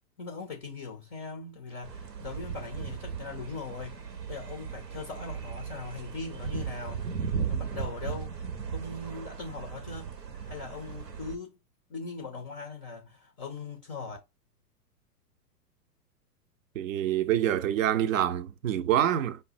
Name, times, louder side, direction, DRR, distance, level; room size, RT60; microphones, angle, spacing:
voice 1, 0.2-7.1 7.5-8.4 8.7-10.1 10.5-11.5 11.9-14.2, left 4 dB, 15° left, 0.4 m, -40 dB
sound 1, 1.8-11.4, right 7 dB, 85° right, 0.8 m, -37 dB
voice 2, 16.7-19.4, right 11 dB, 55° right, 0.5 m, -26 dB
5.1 x 2.1 x 2.6 m
figure-of-eight pair, 105°, 48 cm